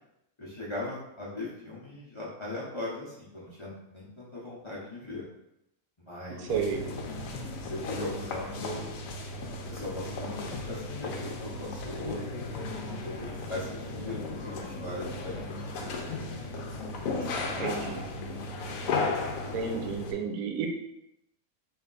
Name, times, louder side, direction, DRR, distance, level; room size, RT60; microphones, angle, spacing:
voice 1, 0.4-5.2 6.0-6.5 7.7-8.9 9.7-12.3 13.0-15.9 17.0-18.0, left 2 dB, 25° left, -7 dB, 0.7 m, -39 dB
voice 2, 6.4-6.8 17.6-18.1 19.5-20.7, right 6 dB, 90° right, 3 dB, 1.1 m, -31 dB
sound 1, 6.5-20.1, left 3 dB, 70° left, 1.0 m, -35 dB
3.4 x 2.8 x 3.9 m, 0.83 s
omnidirectional pair, 1.5 m